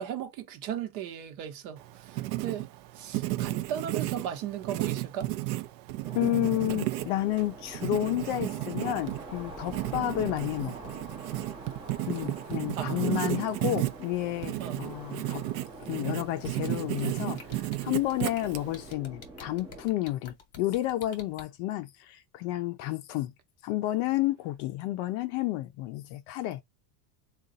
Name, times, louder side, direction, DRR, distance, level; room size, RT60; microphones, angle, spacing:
voice 1, 0.0-2.7 2.9-5.3 12.7-13.5 14.6-14.8, right 9 dB, 60° right, 1.0 m, -36 dB
Writing, 1.8-18.9, right 17 dB, 80° right, 0.6 m, -34 dB
sound 1, 6.0-19.8, right 2 dB, 10° right, 0.4 m, -46 dB
voice 2, 6.1-10.9 12.1-15.4 15.8-23.3 23.6-26.6, left 15 dB, 45° left, 0.5 m, -31 dB
sound 2, 16.4-21.4, left 5 dB, 30° left, 1.0 m, -48 dB
3.8 x 2.4 x 3.9 m
cardioid pair, 170°, 48 cm